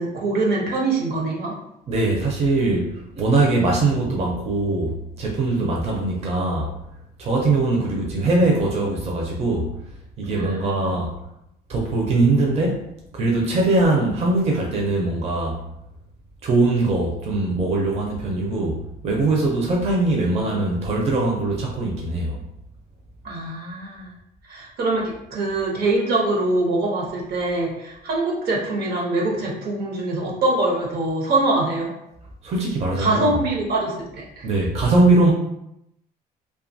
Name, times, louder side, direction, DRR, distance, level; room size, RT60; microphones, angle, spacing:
voice 1, 0.0-1.5 10.2-10.9 23.2-24.1 24.5-31.9 33.0-34.5, right 2 dB, 70° right, -1 dB, 0.9 m, -24 dB
voice 2, 1.9-6.7 7.2-9.7 10.2-11.1 11.7-12.9 13.1-15.6 16.4-22.4 32.4-33.3 34.4-35.3, right 2 dB, 40° right, -1 dB, 0.5 m, -21 dB
2.5 x 2.3 x 2.6 m, 0.81 s
cardioid pair, 110°, 17 cm